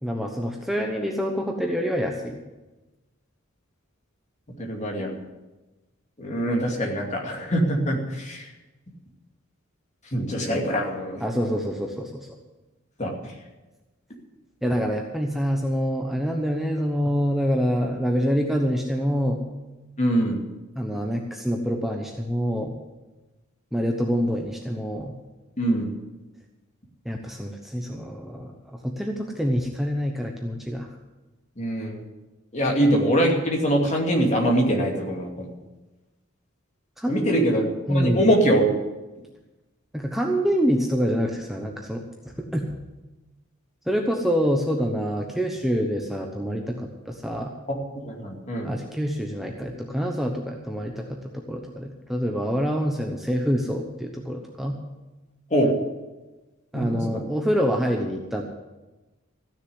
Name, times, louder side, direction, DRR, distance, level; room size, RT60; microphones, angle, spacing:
voice 1, 0.0-2.4 11.2-12.3 14.6-19.4 20.8-22.7 23.7-25.1 27.0-30.9 37.0-37.6 37.9-38.3 39.9-42.7 43.9-47.5 48.6-54.8 56.7-58.4, equal, ahead, 1 dB, 0.9 m, -26 dB
voice 2, 4.6-5.2 6.2-8.5 10.1-11.2 13.0-13.1 20.0-20.4 25.6-25.9 31.6-32.0 32.5-35.5 37.1-38.7 47.7-47.8 48.0-48.7 55.5-55.7 56.7-57.2, right 1 dB, 35° left, 0 dB, 2.5 m, -23 dB
15.0 x 6.8 x 9.5 m, 1.1 s
head